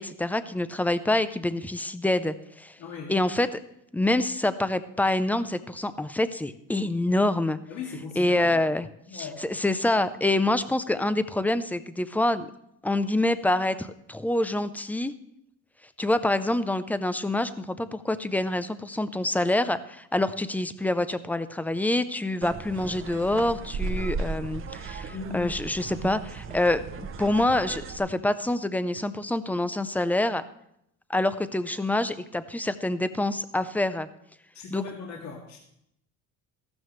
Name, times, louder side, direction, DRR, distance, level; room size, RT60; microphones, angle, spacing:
voice 1, 0.0-2.8 3.1-3.5 3.9-7.6 8.2-8.8 9.1-12.5 12.8-15.1 16.0-30.4 31.1-34.1 34.7-34.8, left 1 dB, 5° left, 13 dB, 0.4 m, -26 dB
voice 2, 2.8-3.1 7.7-8.6 9.1-9.4 25.1-25.5 34.5-35.6, left 4 dB, 50° left, -2 dB, 2.1 m, -38 dB
sound 1, 22.4-28.0, right 4 dB, 40° right, 0.8 m, -35 dB
14.5 x 12.5 x 3.2 m, 0.76 s
cardioid pair, 150°, 33 cm